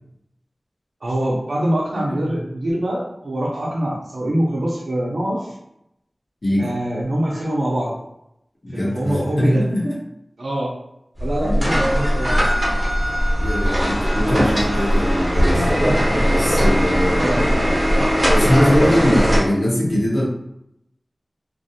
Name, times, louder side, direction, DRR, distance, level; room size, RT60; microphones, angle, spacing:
voice 1, 1.0-5.5 6.6-7.9 8.7-9.7 10.4-10.7 11.2-12.5 17.2-17.4, right 1 dB, 90° right, -5 dB, 0.5 m, -24 dB
voice 2, 2.0-2.3 6.4-6.7 8.6-10.0 11.4-11.6 13.4-15.7 16.2-17.8 18.3-20.3, equal, 60° left, -5 dB, 0.9 m, -21 dB
sound 1, 11.2-19.4, equal, 20° right, 0.9 m, -19 dB
2.5 x 2.0 x 2.7 m, 0.80 s
wide cardioid pair, 50°, 0 cm